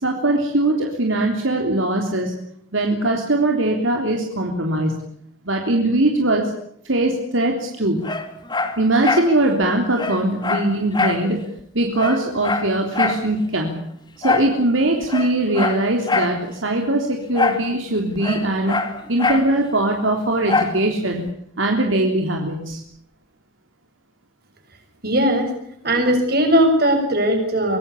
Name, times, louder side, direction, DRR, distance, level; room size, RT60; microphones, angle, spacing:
voice 1, 0.0-2.3 2.7-4.9 5.5-6.4 6.9-8.1 8.8-11.4 11.7-13.8 14.2-18.8 19.1-21.2 21.6-22.8, right 1 dB, 75° right, 2 dB, 3.5 m, -21 dB
Dog, 8.0-9.3 9.6-9.7 10.0-11.2 11.6-11.7 11.9-13.2 14.2-14.5 15.0-16.4 17.3-17.7 17.9-19.5 20.5-20.8 21.3-21.4, left 3 dB, 20° left, 2.3 m, -23 dB
voice 2, 25.0-25.5 25.8-27.8, equal, 50° right, 5 dB, 6.5 m, -18 dB
24.5 x 19.0 x 8.5 m, 0.67 s
head